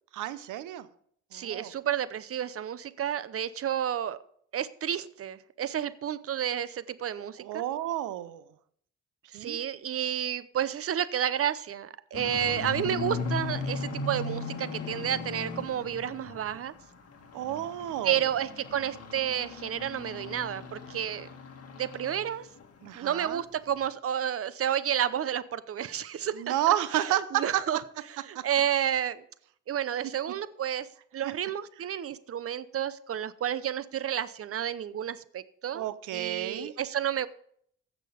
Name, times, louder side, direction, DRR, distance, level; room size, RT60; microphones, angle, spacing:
voice 1, 0.1-0.9 1.3-1.7 7.4-8.4 9.3-9.6 17.3-18.3 22.8-23.4 26.4-27.6 28.3-28.4 30.0-30.1 31.2-31.3 35.7-36.7, right 13 dB, 90° right, 15 dB, 0.8 m, -31 dB
voice 2, 1.3-4.2 4.5-7.6 9.3-16.7 18.0-21.3 21.7-22.5 22.9-26.4 26.9-27.8 28.3-29.2 29.7-30.9 31.1-37.3, right 9 dB, 50° right, 16 dB, 0.7 m, -31 dB
sound 1, 12.1-16.7 17.1-22.3 22.6-22.9 23.2-23.3 23.7-23.8, left 4 dB, 55° left, 2.0 m, -37 dB
15.5 x 6.1 x 5.1 m, 0.64 s
cardioid pair, 90°, 30 cm